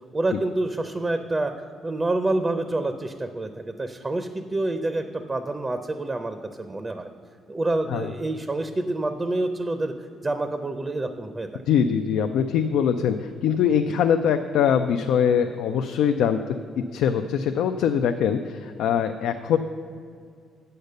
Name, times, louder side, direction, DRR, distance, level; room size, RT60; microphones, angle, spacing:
voice 1, 0.1-1.5 1.8-7.1 7.5-9.9 10.2-11.6, right 2 dB, 20° right, 8 dB, 0.5 m, -27 dB
voice 2, 11.7-16.4 16.9-19.6, left 8 dB, 85° left, 6 dB, 0.4 m, -22 dB
8.0 x 6.6 x 6.6 m, 2.2 s
cardioid pair, 105°, 0 cm